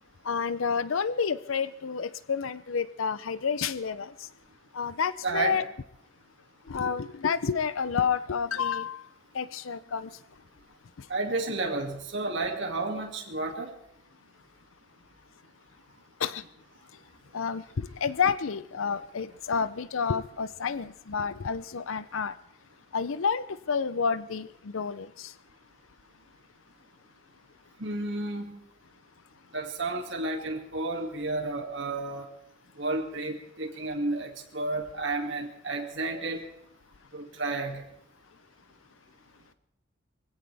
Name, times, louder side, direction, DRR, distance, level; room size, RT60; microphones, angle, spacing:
voice 1, 0.3-4.1 4.7-5.6 6.7-9.0 9.3-10.1 16.2-16.4 17.3-22.3 22.9-25.3, left 6 dB, 75° left, 15 dB, 0.6 m, -29 dB
voice 2, 5.2-5.6 11.1-13.7 27.8-28.5 29.5-32.3 32.8-36.4 37.1-37.9, right 2 dB, 60° right, 2 dB, 2.4 m, -31 dB
24.0 x 16.0 x 3.5 m, 0.76 s
head